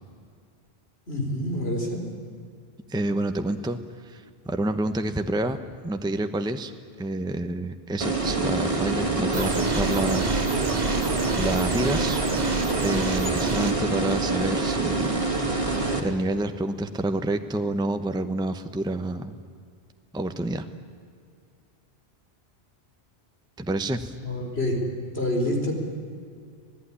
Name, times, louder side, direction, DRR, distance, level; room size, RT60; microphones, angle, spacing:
voice 1, 1.1-2.0 24.2-24.8 25.1-25.7, left 1 dB, 70° left, 1 dB, 4.5 m, -27 dB
voice 2, 2.9-5.6 5.8-6.7 7.0-10.3 11.4-12.2 12.8-15.2 16.0-19.4 20.1-20.7 23.6-24.1, right 2 dB, 5° right, 8 dB, 0.8 m, -28 dB
sound 1, 8.0-16.0, right 3 dB, 30° right, 2.6 m, -26 dB
sound 2, 9.3-13.7, right 3 dB, 85° right, 2.2 m, -30 dB
26.5 x 17.5 x 10.0 m, 2.2 s
omnidirectional pair, 1.1 m